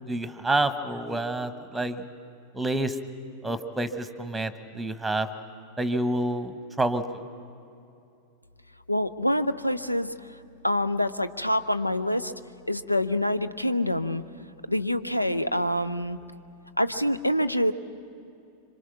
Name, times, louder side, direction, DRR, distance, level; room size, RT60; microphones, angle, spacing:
voice 1, 0.1-2.0 2.5-3.0 3.4-5.3 5.8-7.0, right 2 dB, 5° right, 11 dB, 1.2 m, -28 dB
voice 2, 8.9-10.1 10.6-12.3 12.7-14.2 14.7-16.2 16.8-17.7, left 1 dB, 90° left, 11 dB, 0.7 m, -26 dB
26.5 x 25.0 x 5.9 m, 2.6 s
figure-of-eight pair, 90°, 0 cm